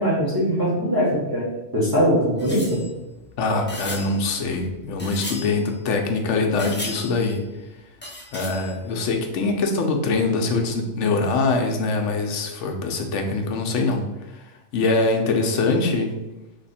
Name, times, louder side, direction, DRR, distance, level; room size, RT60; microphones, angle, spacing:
voice 1, 0.0-1.5 1.7-2.8, equal, 15° right, -6 dB, 1.1 m, -21 dB
sound 1, 2.4-6.2 6.6-7.5 8.0-9.2 9.5-9.6 9.8-9.9, left 1 dB, 10° left, 0.9 m, -37 dB
voice 2, 3.4-7.4 8.3-14.1 14.7-16.2, left 3 dB, 70° left, 4 dB, 1.0 m, -23 dB
3.4 x 3.0 x 4.2 m, 1.0 s
omnidirectional pair, 1.3 m